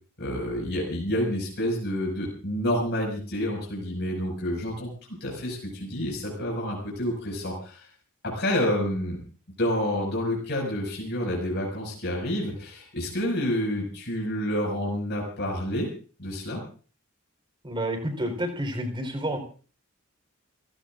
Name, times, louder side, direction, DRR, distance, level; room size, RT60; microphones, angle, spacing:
voice 1, 0.2-7.9 8.2-9.2 9.6-15.9 16.2-16.6, equal, 55° left, -1 dB, 6.0 m, -29 dB
voice 2, 17.6-19.4, right 1 dB, 25° right, 6 dB, 4.2 m, -29 dB
29.5 x 16.0 x 2.6 m, 0.40 s
head